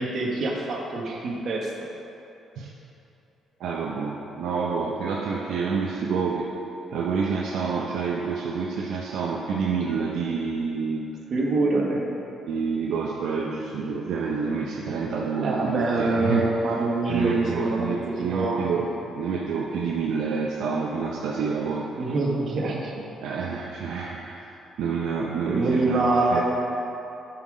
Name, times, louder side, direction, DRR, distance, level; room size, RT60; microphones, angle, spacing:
voice 1, 0.0-1.7 11.3-12.0 15.4-18.7 22.0-22.9 25.5-26.4, right 2 dB, 55° right, -1 dB, 1.4 m, -25 dB
voice 2, 3.6-6.5 6.9-11.1 12.5-16.5 17.1-18.9 19.1-21.9 23.2-24.4 24.8-26.4, right 5 dB, 80° right, -2 dB, 0.6 m, -28 dB
8.1 x 5.8 x 4.9 m, 2.9 s
cardioid pair, 90°, 0 cm